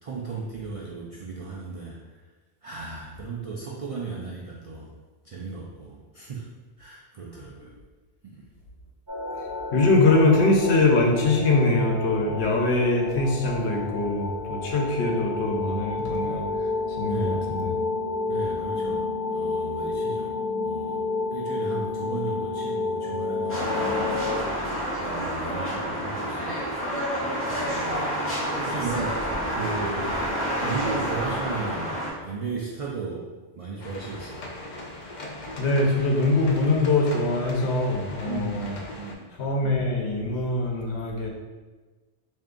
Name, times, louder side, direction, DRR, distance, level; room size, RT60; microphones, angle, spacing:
voice 1, 0.0-2.2 2.6-4.9 5.2-6.5 6.8-7.8 8.2-8.4 17.0-17.4 18.3-21.0 21.3-26.8 27.4-28.1 28.6-34.5 38.2-39.3, right 4 dB, 65° right, -3 dB, 0.3 m, -36 dB
sound 1, 9.1-24.4, left 3 dB, 20° right, 0.9 m, -30 dB
voice 2, 9.7-16.5 17.0-17.7 35.6-38.7 39.4-41.3, left 2 dB, 75° left, 0 dB, 0.9 m, -23 dB
sound 2, 23.5-32.1, equal, 10° left, 1.0 m, -29 dB
sound 3, 33.8-39.1, left 1 dB, 55° left, 0.6 m, -40 dB
3.3 x 2.6 x 3.7 m, 1.3 s
omnidirectional pair, 1.1 m